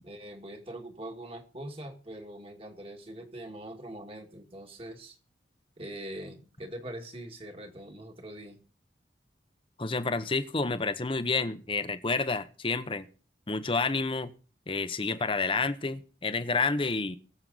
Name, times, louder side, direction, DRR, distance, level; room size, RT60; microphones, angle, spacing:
voice 1, 0.0-5.2 5.8-8.6, right 1 dB, 30° right, 4 dB, 1.9 m, -43 dB
voice 2, 9.8-13.1 13.5-14.3 14.7-17.2, left 4 dB, 30° left, 12 dB, 0.8 m, -29 dB
21.0 x 7.7 x 3.9 m, 0.38 s
head